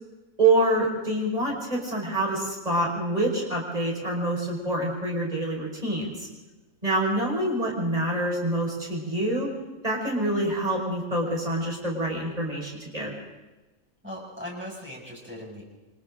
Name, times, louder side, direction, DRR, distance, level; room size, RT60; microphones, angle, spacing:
voice 1, 0.4-6.3 6.8-9.5 9.8-13.1, right 1 dB, 25° right, -2 dB, 5.5 m, -26 dB
voice 2, 14.0-15.6, equal, 10° right, -4 dB, 6.4 m, -39 dB
28.5 x 25.0 x 3.9 m, 1.1 s
omnidirectional pair, 1.4 m